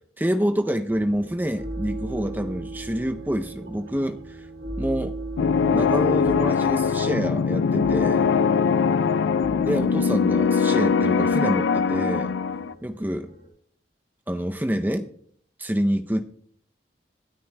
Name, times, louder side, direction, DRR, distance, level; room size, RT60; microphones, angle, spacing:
voice 1, 0.2-4.4 4.8-5.2 5.7-8.3 9.6-12.3 12.8-13.3 14.3-15.1 15.6-16.2, equal, 10° right, 7 dB, 0.5 m, -27 dB
sound 1, 0.9-13.5, right 2 dB, 55° right, 4.3 m, -38 dB
sound 2, 5.4-12.7, left 6 dB, 80° left, 0.3 m, -22 dB
26.5 x 9.1 x 2.2 m, 0.63 s
head